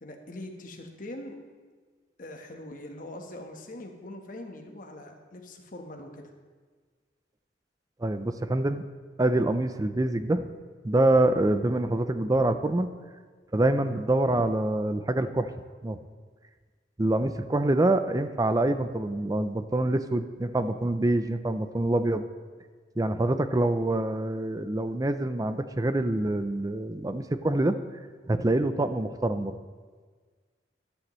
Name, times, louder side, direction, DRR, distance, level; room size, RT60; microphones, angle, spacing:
voice 1, 0.0-1.4 2.2-6.3, left 1 dB, 45° left, 3 dB, 1.2 m, -42 dB
voice 2, 8.0-8.8 9.2-10.5 10.8-12.9 13.5-15.5 15.8-16.0 17.0-22.2 23.0-27.8 28.3-29.6, right 1 dB, 20° right, 10 dB, 0.5 m, -25 dB
13.5 x 11.5 x 3.2 m, 1.5 s
head